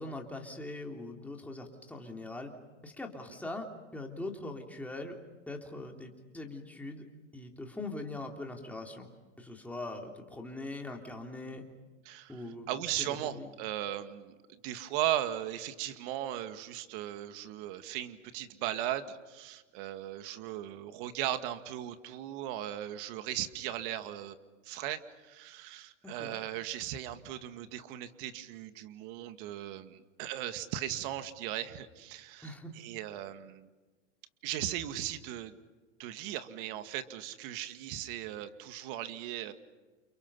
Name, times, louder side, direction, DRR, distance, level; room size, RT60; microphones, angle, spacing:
voice 1, 0.0-2.5 2.8-5.2 5.5-7.0 7.3-9.1 9.4-11.6 12.3-12.7 13.0-13.5 26.0-26.4 32.4-32.7, left 2 dB, 5° left, 1 dB, 3.3 m, -41 dB
voice 2, 12.1-14.4 14.6-24.4 24.6-32.5 32.8-33.7 34.4-35.5 36.0-39.5, right 12 dB, 50° right, 9 dB, 2.2 m, -37 dB
30.0 x 29.5 x 5.7 m, 1.3 s
supercardioid pair, 145°, 36 cm